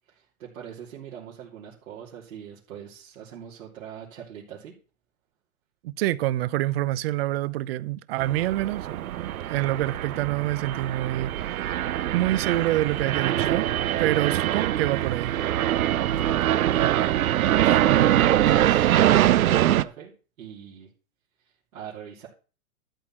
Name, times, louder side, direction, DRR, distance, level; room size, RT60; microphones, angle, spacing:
voice 1, 0.1-4.7 17.5-20.1 20.4-20.9 21.7-22.3, right 8 dB, 70° right, 3.1 m, -42 dB
voice 2, 5.8-11.8 12.1-13.7 14.0-15.4 17.8-18.2, right 15 dB, 45° right, 0.6 m, -27 dB
sound 1, 8.2-19.8, right 12 dB, 90° right, 0.7 m, -23 dB
12.5 x 4.5 x 7.5 m
hypercardioid pair, 145°, 42 cm